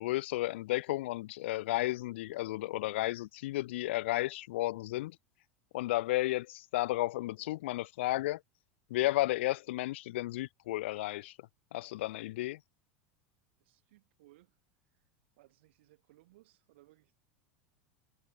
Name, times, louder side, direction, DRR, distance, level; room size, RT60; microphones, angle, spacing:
voice 1, 0.0-5.2 5.7-8.4 8.9-11.4 11.7-12.6, left 17 dB, 70° left, 0.8 m, -33 dB
voice 2, 13.6-14.6 14.9-15.1 15.4-17.1, right 18 dB, 70° right, 6.9 m, -64 dB
hypercardioid pair, 85°, 7 cm